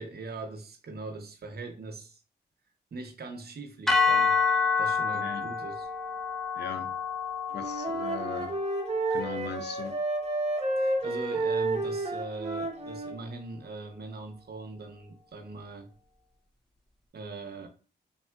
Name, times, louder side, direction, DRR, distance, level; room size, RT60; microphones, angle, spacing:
voice 1, 0.0-2.2 2.9-4.4 4.8-5.9 10.8-15.9 17.1-17.7, right 3 dB, 60° right, 0.7 m, -41 dB
sound 1, 3.9-12.1, left 5 dB, ahead, 0.4 m, -30 dB
voice 2, 5.1-5.5 6.5-7.0 7.5-8.6 9.1-10.0, left 6 dB, 65° left, 0.5 m, -39 dB
Wind instrument woodwind instrument, 7.5-13.2, right 2 dB, 35° right, 0.8 m, -30 dB
3.5 x 2.3 x 2.2 m
cardioid pair, 50°, 19 cm